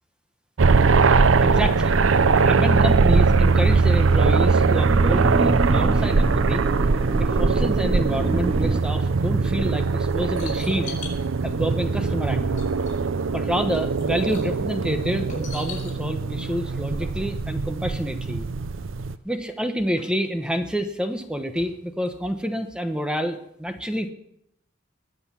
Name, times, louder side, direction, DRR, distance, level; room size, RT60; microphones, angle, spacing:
sound 1, 0.6-19.2, right 4 dB, 85° right, 0.6 m, -21 dB
voice 1, 1.4-2.0 2.5-6.6 7.2-11.0 11.4-12.6 13.3-18.4 19.2-24.1, equal, 5° right, 7 dB, 1.0 m, -28 dB
sound 2, 2.7-8.8, right 2 dB, 30° right, 0.5 m, -28 dB
sound 3, 9.8-11.3 12.2-12.3 12.5-13.2 13.5-14.6 15.3-15.9 17.9-18.0 18.3-18.4 19.0-19.1 19.7-20.6 21.6-21.7 22.1-22.2, left 4 dB, 40° left, 5.9 m, -40 dB
21.0 x 8.0 x 7.3 m, 0.79 s
head